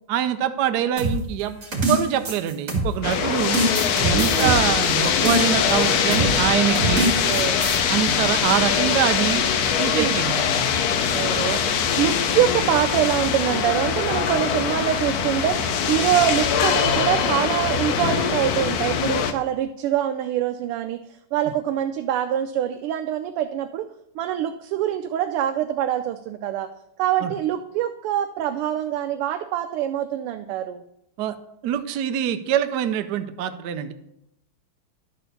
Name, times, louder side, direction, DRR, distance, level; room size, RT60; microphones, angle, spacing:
voice 1, 0.1-1.6 1.9-3.6 4.0-7.1 7.9-9.4 9.7-10.6 27.2-27.3 31.2-31.4 31.6-33.9, right 10 dB, 70° right, 9 dB, 1.0 m, -24 dB
sound 1, 1.0-3.1 3.5-5.7 6.1-6.4 6.7-7.8, right 1 dB, 35° right, 2.5 m, -25 dB
sound 2, 3.0-19.3, left 7 dB, 70° left, 0.9 m, -22 dB
voice 2, 4.1-4.6 6.8-7.6 9.9-10.3 11.1-21.0 21.3-23.9 24.1-26.7 27.0-30.8, right 11 dB, 85° right, 7 dB, 1.5 m, -25 dB
Laughter, 4.9-10.7, equal, 25° left, 1.7 m, -36 dB
11.0 x 4.3 x 6.6 m, 0.81 s
omnidirectional pair, 2.4 m